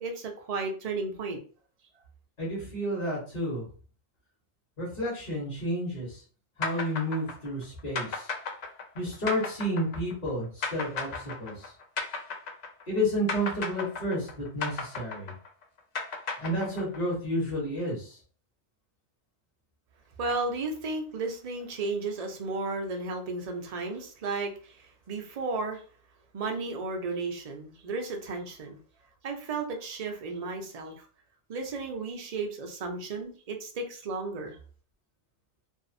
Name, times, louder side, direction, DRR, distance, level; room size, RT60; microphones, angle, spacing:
voice 1, 0.0-1.4 20.2-25.8 26.3-28.8 29.2-31.1 31.5-34.6, right 3 dB, 50° right, 3 dB, 0.5 m, -34 dB
voice 2, 2.4-3.7 4.8-6.2 6.6-8.3 8.9-11.7 12.9-15.3 16.4-18.2, equal, 40° left, -5 dB, 1.2 m, -31 dB
sound 1, 6.6-13.0 13.3-17.1, left 4 dB, 55° left, 0.5 m, -34 dB
2.7 x 2.4 x 2.6 m, 0.40 s
omnidirectional pair, 1.2 m